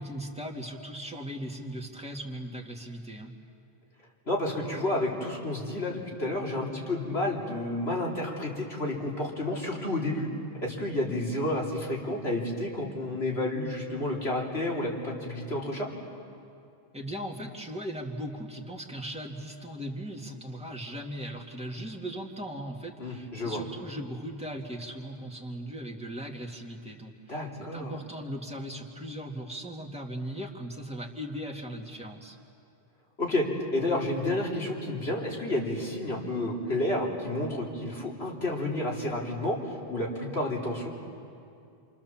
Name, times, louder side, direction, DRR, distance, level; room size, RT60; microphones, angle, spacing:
voice 1, 0.0-3.3 16.9-32.4, equal, 5° right, 0 dB, 2.1 m, -38 dB
voice 2, 4.3-10.3 10.6-15.9 23.0-23.6 27.3-28.0 33.2-40.9, left 1 dB, 80° left, -2 dB, 3.8 m, -30 dB
27.5 x 27.5 x 7.3 m, 2.5 s
omnidirectional pair, 1.1 m